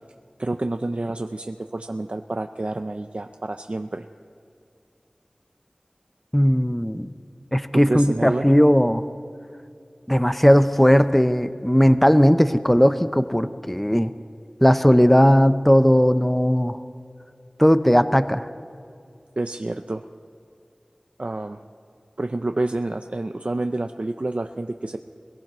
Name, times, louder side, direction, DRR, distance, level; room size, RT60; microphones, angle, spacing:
voice 1, 0.4-4.1 7.7-8.5 19.4-20.0 21.2-21.6 22.2-25.0, right 2 dB, 60° right, 6 dB, 0.5 m, -28 dB
voice 2, 6.3-7.1 7.5-9.0 10.1-14.1 14.6-16.8 17.6-18.4, equal, 5° left, 11 dB, 0.6 m, -17 dB
22.5 x 17.5 x 3.1 m, 2.4 s
wide cardioid pair, 40°, 2 cm